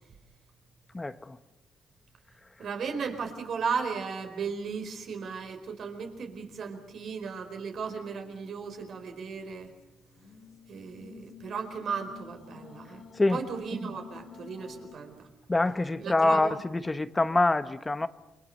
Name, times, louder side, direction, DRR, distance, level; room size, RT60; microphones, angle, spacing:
voice 1, 0.9-1.4 13.1-13.4 15.5-18.1, left 2 dB, 20° left, 1.2 m, -25 dB
voice 2, 2.6-9.7 10.7-13.0 13.3-15.3 16.0-16.6, right 5 dB, 60° right, 4.6 m, -35 dB
sound 1, 8.2-15.0, left 6 dB, 55° left, 3.8 m, -51 dB
29.0 x 24.0 x 6.6 m
cardioid pair, 90°, 0 cm